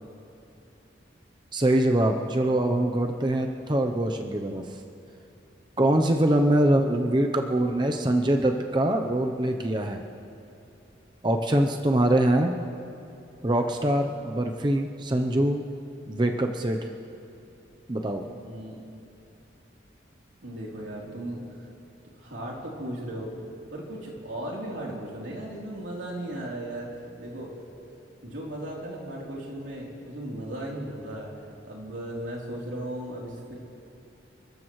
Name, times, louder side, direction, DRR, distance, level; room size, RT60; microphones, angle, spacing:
voice 1, 1.5-4.6 5.8-10.0 11.2-12.6 13.4-15.6 16.1-16.8 17.9-18.2, right 1 dB, 25° right, 3 dB, 0.6 m, -23 dB
voice 2, 18.2-18.8 20.4-21.4 22.2-23.4 23.7-26.9 27.2-27.5 28.2-31.3 31.6-33.5, right 1 dB, 90° right, -3 dB, 3.4 m, -36 dB
30.0 x 14.0 x 3.1 m, 2.8 s
head